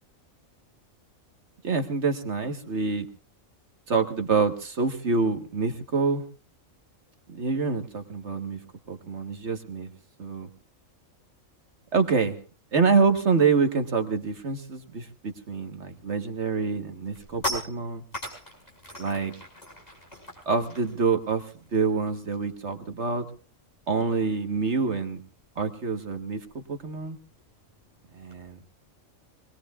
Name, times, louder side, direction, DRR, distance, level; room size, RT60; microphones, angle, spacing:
voice 1, 1.6-3.0 3.9-6.2 7.3-8.6 8.9-9.9 10.2-10.5 11.9-12.4 12.7-18.0 19.0-19.3 20.4-23.3 23.9-25.2 25.6-27.2 28.1-28.6, right 4 dB, 55° right, 6 dB, 1.6 m, -26 dB
sound 1, 16.9-22.6 22.9-23.1 23.4-28.4, left 1 dB, 30° left, 5.9 m, -40 dB
25.5 x 20.5 x 2.4 m, 0.37 s
omnidirectional pair, 1.4 m